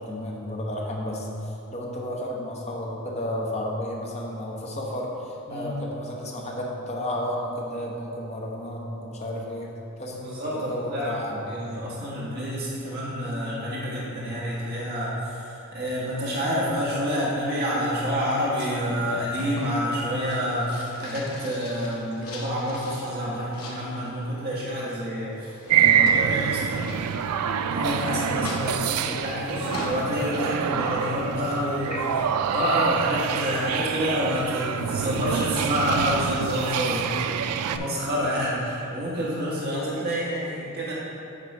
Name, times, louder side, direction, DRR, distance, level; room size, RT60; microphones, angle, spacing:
voice 1, 0.0-11.5 24.3-24.7 24.9-25.0 29.4-29.6 31.9-32.0, left 1 dB, 30° left, -2 dB, 0.9 m, -32 dB
voice 2, 10.2-11.1 11.5-26.9 27.7-32.0 32.5-37.1 37.6-40.9, equal, 45° right, -7 dB, 1.3 m, -28 dB
sound 1, 18.3-23.1 23.5-24.2 25.2-27.9 28.4-30.1, left 2 dB, 75° left, 1.0 m, -40 dB
sound 2, 25.7-37.8, right 8 dB, 90° right, 0.3 m, -26 dB
9.0 x 3.1 x 5.3 m, 2.8 s
head